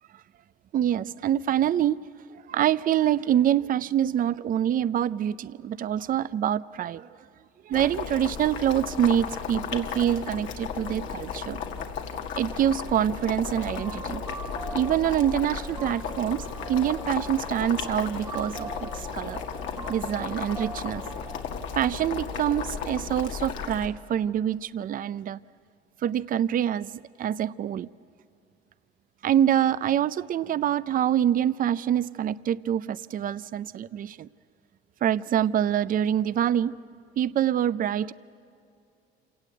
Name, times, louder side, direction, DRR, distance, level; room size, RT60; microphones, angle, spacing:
voice 1, 0.7-2.0 2.5-7.1 7.7-11.6 12.4-14.2 14.7-19.4 19.9-21.0 21.7-25.4 26.0-27.9 29.2-34.3 35.0-36.7 37.2-38.1, right 10 dB, 45° right, 17 dB, 0.5 m, -25 dB
Boiling, 7.7-23.9, left 6 dB, 75° left, 2.0 m, -35 dB
sound 1, 13.6-21.6, right 2 dB, 15° right, 1.0 m, -42 dB
27.5 x 17.5 x 8.0 m, 2.7 s
cardioid pair, 105°, 20 cm